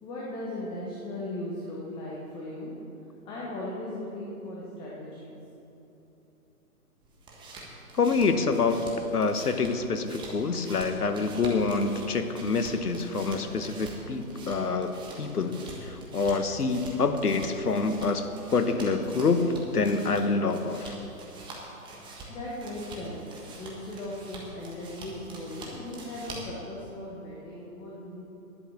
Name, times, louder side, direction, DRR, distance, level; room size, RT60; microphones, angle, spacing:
voice 1, 0.0-2.7 3.2-5.4 22.3-28.2, left 1 dB, 10° left, -5 dB, 1.1 m, -38 dB
sound 1, 7.0-26.6, right 2 dB, 10° right, 1.3 m, -45 dB
voice 2, 7.9-8.8 9.1-21.0, left 4 dB, 80° left, 8 dB, 1.2 m, -27 dB
11.0 x 8.1 x 7.4 m, 3.0 s
figure-of-eight pair, 135°, 46 cm